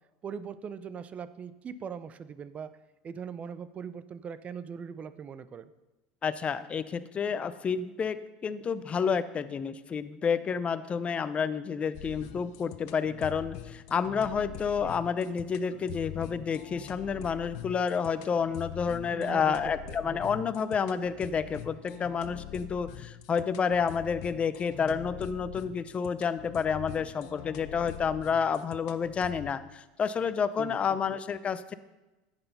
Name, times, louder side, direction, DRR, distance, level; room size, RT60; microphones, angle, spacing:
voice 1, 0.2-2.7 3.0-5.7 19.1-19.6 19.8-20.3 30.6-30.8 31.1-31.2, right 7 dB, 30° right, 14 dB, 0.6 m, -40 dB
voice 2, 6.2-31.7, left 6 dB, 30° left, 13 dB, 0.7 m, -30 dB
sound 1, 11.9-29.5, left 13 dB, 65° left, 0.8 m, -44 dB
11.0 x 8.1 x 5.5 m, 1.1 s
supercardioid pair, 100°, 4 cm